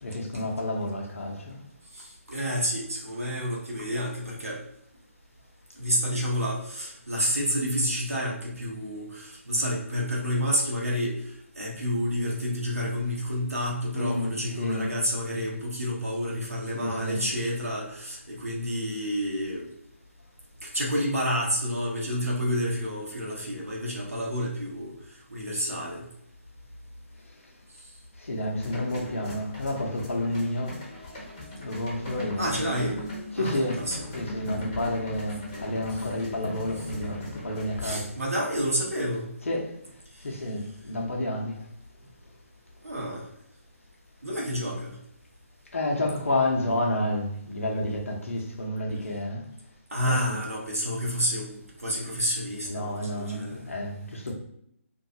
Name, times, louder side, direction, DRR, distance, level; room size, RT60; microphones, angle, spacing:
voice 1, 0.0-1.6 13.9-15.0 16.7-17.3 28.2-30.8 31.6-32.4 33.3-33.8 34.1-38.1 39.5-39.7 40.2-41.6 45.7-49.4 50.0-50.4 52.6-54.3, left 1 dB, 65° left, 0.7 m, -30 dB
voice 2, 2.0-4.6 5.8-11.2 11.6-19.6 20.6-24.9 25.3-26.0 32.4-33.0 33.4-34.1 37.8-39.3 42.8-43.2 44.2-45.0 49.9-53.6, equal, 80° right, 0.9 m, -29 dB
sound 1, 28.6-37.8, left 1 dB, 30° left, 0.8 m, -39 dB
2.6 x 2.3 x 2.7 m
figure-of-eight pair, 140°, 8 cm